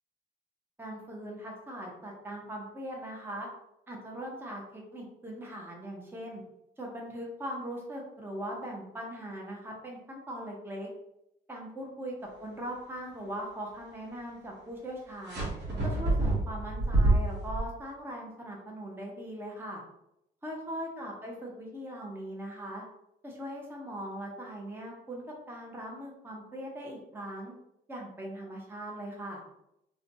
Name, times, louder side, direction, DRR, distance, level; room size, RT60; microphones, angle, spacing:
voice 1, 0.8-3.5 3.9-6.4 6.8-10.9 11.5-15.5 15.8-19.8 20.4-22.8 23.2-27.5 27.9-29.4, right 1 dB, 10° right, -1 dB, 0.6 m, -40 dB
sound 1, 15.3-17.6, right 2 dB, 60° right, 1.0 m, -27 dB
2.5 x 2.2 x 2.6 m, 0.83 s
cardioid pair, 90°, 20 cm